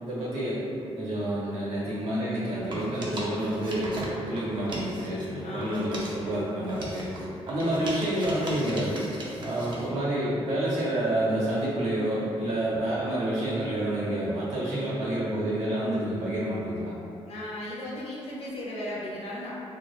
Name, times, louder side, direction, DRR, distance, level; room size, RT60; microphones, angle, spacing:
voice 1, 0.0-7.1 7.5-9.0 9.4-16.9, right 1 dB, 75° right, -8 dB, 1.0 m, -29 dB
sound 1, 2.7-5.3 5.6-9.9, right 1 dB, 45° right, 0.5 m, -38 dB
voice 2, 5.4-5.9 17.3-19.5, left 1 dB, 70° left, -6 dB, 0.6 m, -36 dB
2.7 x 2.0 x 2.4 m, 2.6 s
cardioid pair, 125°, 11 cm